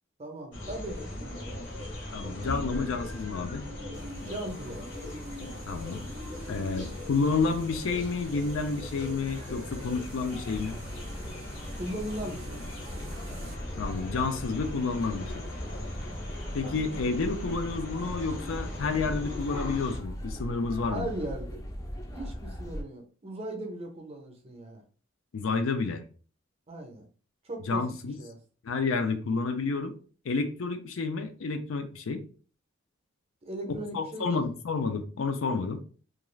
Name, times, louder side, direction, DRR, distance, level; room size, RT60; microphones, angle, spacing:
voice 1, 0.2-1.9 2.2-2.9 4.3-4.9 11.7-12.6 20.9-21.6 22.1-24.8 26.7-27.1 27.4-27.8 28.2-28.4 33.4-34.5, right 1 dB, 30° right, 0.5 m, -38 dB
sound 1, 0.5-20.0, left 1 dB, 65° left, 0.8 m, -39 dB
voice 2, 2.1-3.7 5.7-6.0 6.5-10.8 13.8-15.4 16.5-21.1 25.3-26.1 27.7-28.2 28.6-29.9 30.2-32.2 33.9-35.8, left 4 dB, 85° left, 0.4 m, -30 dB
sound 2, 3.9-13.6, right 2 dB, 85° right, 0.5 m, -48 dB
sound 3, 10.3-22.8, equal, 15° left, 0.3 m, -40 dB
2.4 x 2.3 x 3.1 m
head